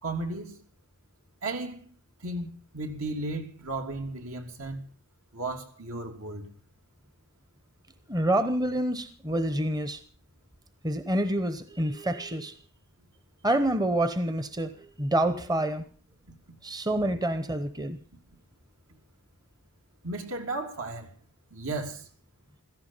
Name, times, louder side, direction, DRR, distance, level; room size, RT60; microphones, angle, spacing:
voice 1, 0.0-0.6 1.4-1.9 2.2-4.8 5.3-6.5 20.0-21.1 21.5-22.1, right 2 dB, 70° right, 3.0 m, -34 dB
voice 2, 8.1-10.0 10.8-12.5 13.4-15.8 16.6-18.0, right 1 dB, 20° right, 0.9 m, -27 dB
16.5 x 14.5 x 5.7 m
head